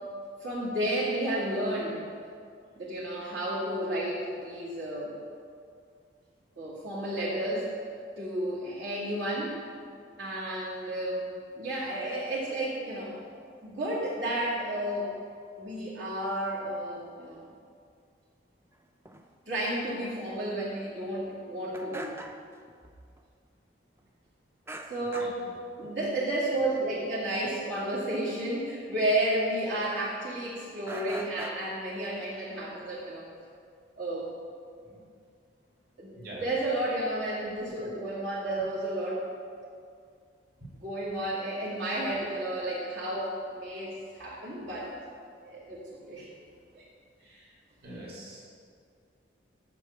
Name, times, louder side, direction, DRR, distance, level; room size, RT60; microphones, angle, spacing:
voice 1, 0.4-2.0 2.8-5.1 6.6-7.7 8.2-9.6 10.2-11.3 11.5-13.2 13.6-15.2 15.6-17.5 19.5-22.1 24.9-25.4 25.8-33.3 34.0-34.3 36.0-39.3 40.8-44.9 45.4-46.3 46.7-46.8 47.2-47.5, right 1 dB, 70° right, -8 dB, 2.4 m, -32 dB
sound 1, 19.0-19.3 19.8-19.9 20.2-20.3 20.7-20.8 21.0-21.1 21.7-22.9 23.2-23.3 24.7-25.5 25.8-26.1 26.5-26.7 27.1-27.2 27.7-27.8 28.3-28.4 29.5-30.1 30.9-31.5, right 1 dB, 15° right, 0.4 m, -42 dB
voice 2, 25.0-25.5 34.8-35.0 36.1-36.4 37.7-37.9 38.6-38.7 40.6-40.7 47.8-48.5, right 1 dB, 50° right, -6 dB, 2.6 m, -45 dB
7.3 x 6.8 x 7.2 m, 2.2 s
head